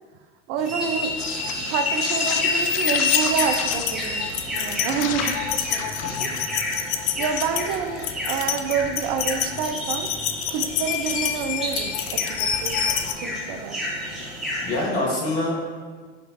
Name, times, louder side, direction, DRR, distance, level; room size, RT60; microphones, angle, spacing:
voice 1, 0.5-1.1 1.4-5.4 5.7-5.9 6.2-6.3 7.2-10.1 10.5-12.8 13.2-13.8, right 7 dB, 50° right, 6 dB, 0.5 m, -28 dB
sound 1, 0.6-14.8, equal, ahead, 1.3 m, -32 dB
sound 2, 1.2-13.1, left 8 dB, 40° left, 0.4 m, -27 dB
voice 2, 4.9-5.3 6.0-6.2 14.6-15.7, left 2 dB, 70° left, -4 dB, 1.4 m, -26 dB
5.9 x 3.1 x 2.9 m, 1.5 s
hypercardioid pair, 85°, 38 cm